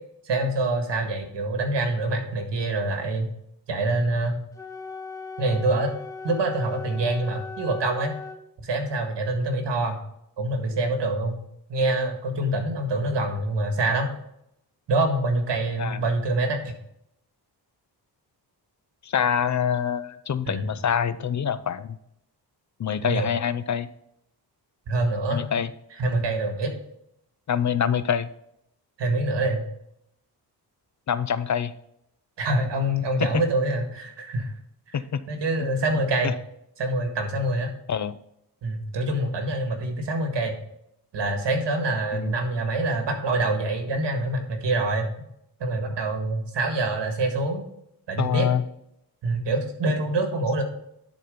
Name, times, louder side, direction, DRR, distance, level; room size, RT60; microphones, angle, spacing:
voice 1, 0.2-3.3 3.7-4.4 5.4-5.9 6.2-8.1 8.6-10.0 10.4-11.4 11.7-14.1 14.9-16.7 20.4-20.7 23.0-23.3 24.9-25.4 26.0-26.7 29.0-29.6 32.4-34.5 34.9-35.0 35.3-36.3 36.8-37.7 38.6-40.6 41.1-45.1 45.6-47.6 48.1-48.5 49.2-50.6, right 2 dB, 85° right, 4 dB, 1.7 m, -25 dB
Wind instrument woodwind instrument, 4.5-8.4, left 4 dB, 10° left, 1.0 m, -38 dB
voice 2, 19.0-22.0 22.8-23.9 25.3-25.7 27.5-28.3 31.1-31.7 34.9-35.2 36.2-36.3 37.9-38.2 42.1-42.3 48.2-48.6, left 8 dB, 45° left, 14 dB, 0.5 m, -25 dB
11.0 x 4.2 x 5.0 m, 0.77 s
wide cardioid pair, 100°, 42 cm